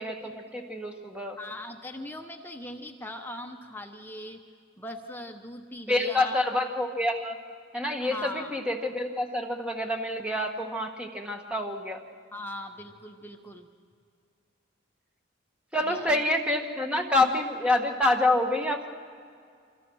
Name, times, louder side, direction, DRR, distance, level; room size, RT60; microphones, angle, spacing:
voice 1, 0.0-1.4 5.9-7.4 7.7-12.0 15.7-18.9, left 1 dB, 5° right, 3 dB, 1.5 m, -27 dB
voice 2, 1.4-4.4 4.8-6.5 8.0-8.6 12.3-13.7 15.8-16.2, left 1 dB, 10° left, 4 dB, 0.9 m, -40 dB
26.5 x 26.0 x 6.3 m, 2.2 s
head